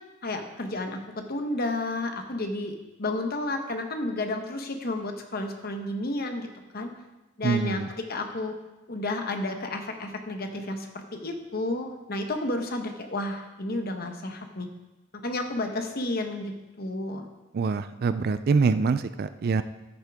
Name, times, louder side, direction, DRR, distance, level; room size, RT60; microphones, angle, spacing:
voice 1, 0.2-6.5 6.7-6.9 7.4-8.5 8.9-14.7 15.1-17.3, left 2 dB, 45° left, 5 dB, 1.0 m, -31 dB
voice 2, 7.4-7.9 17.5-19.6, right 4 dB, 45° right, 13 dB, 0.3 m, -25 dB
13.5 x 6.6 x 3.5 m, 1.1 s
head